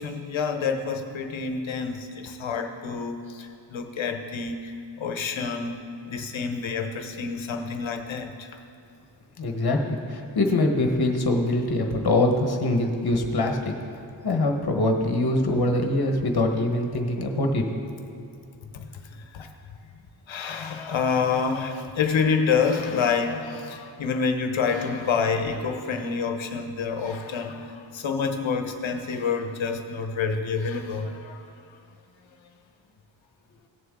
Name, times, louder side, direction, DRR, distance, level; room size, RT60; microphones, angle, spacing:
voice 1, 0.0-5.7 6.1-8.5 18.7-19.5 20.3-31.4, left 5 dB, 65° left, 5 dB, 1.0 m, -28 dB
voice 2, 9.4-13.7 14.2-17.6, left 2 dB, 50° left, 3 dB, 1.2 m, -23 dB
17.0 x 6.9 x 3.7 m, 2.5 s
wide cardioid pair, 130°, 49 cm